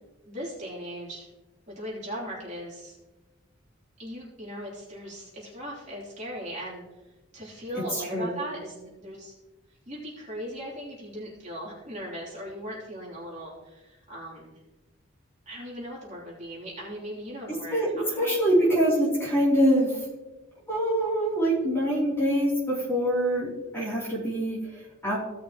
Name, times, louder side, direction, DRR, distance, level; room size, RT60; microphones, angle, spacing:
voice 1, 0.2-1.3 1.7-3.0 4.0-6.8 7.3-9.3 9.9-14.5 15.4-18.6, equal, 35° right, -6 dB, 3.2 m, -38 dB
voice 2, 7.7-8.3 17.7-17.9 18.2-20.0 20.7-23.5 23.7-25.2, equal, 10° left, -7 dB, 3.0 m, -24 dB
17.0 x 6.0 x 3.0 m, 1.1 s
head